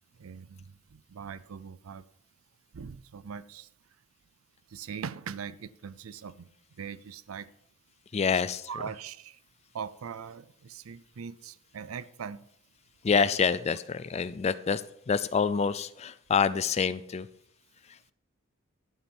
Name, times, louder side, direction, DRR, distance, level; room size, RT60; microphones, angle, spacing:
voice 1, 0.2-0.6 0.9-2.0 2.7-3.7 4.7-6.5 6.8-7.5 8.7-9.4 9.7-12.4, right 6 dB, 85° right, 16 dB, 0.5 m, -41 dB
voice 2, 8.1-8.7 13.0-17.3 17.9-18.0, left 6 dB, 30° left, 15 dB, 0.3 m, -27 dB
12.0 x 7.1 x 5.4 m, 0.72 s
head